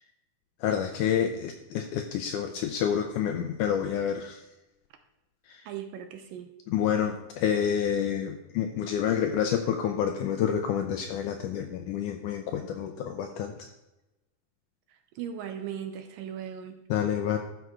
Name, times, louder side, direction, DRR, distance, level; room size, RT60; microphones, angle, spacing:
voice 1, 0.6-4.4 5.5-5.6 6.7-13.5 16.9-17.4, left 8 dB, 80° left, 5 dB, 1.9 m, -28 dB
voice 2, 5.7-6.5 15.2-16.8, right 9 dB, 80° right, 7 dB, 2.3 m, -37 dB
12.5 x 5.4 x 4.8 m, 0.98 s
omnidirectional pair, 4.2 m